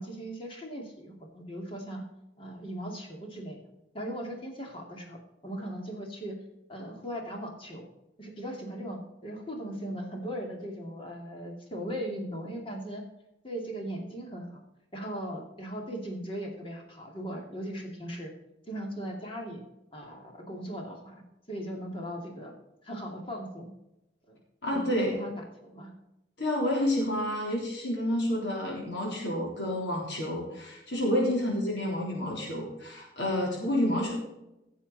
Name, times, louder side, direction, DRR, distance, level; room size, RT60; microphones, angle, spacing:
voice 1, 0.0-2.0 2.4-3.6 3.9-5.2 5.4-6.4 6.7-7.9 8.2-13.0 13.4-14.6 14.9-18.3 18.7-19.6 19.9-21.2 21.5-22.5 22.8-23.7 24.3-24.4 24.7-25.3 25.6-25.9 28.3-28.5 31.4-31.6 33.7-33.9, right 1 dB, 30° left, 1 dB, 2.4 m, -38 dB
voice 2, 24.6-25.1 26.4-34.1, left 1 dB, 65° left, -3 dB, 3.6 m, -29 dB
16.0 x 7.3 x 4.1 m, 0.89 s
head